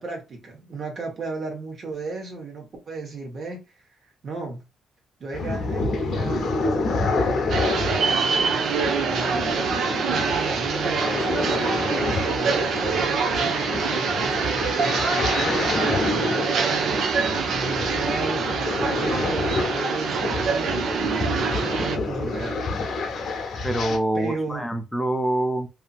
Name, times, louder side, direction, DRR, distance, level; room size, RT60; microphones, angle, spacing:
voice 1, 0.0-3.6 4.2-4.6 5.2-9.7 10.1-22.7 24.1-24.6, right 3 dB, 55° right, 1.2 m, -34 dB
sound 1, 5.3-24.0, left 3 dB, 65° left, 0.8 m, -28 dB
sound 2, 7.5-22.0, right 5 dB, 70° right, 0.6 m, -25 dB
voice 2, 23.6-25.7, right 1 dB, 5° left, 0.5 m, -25 dB
2.7 x 2.7 x 2.4 m
cardioid pair, 95°, 0 cm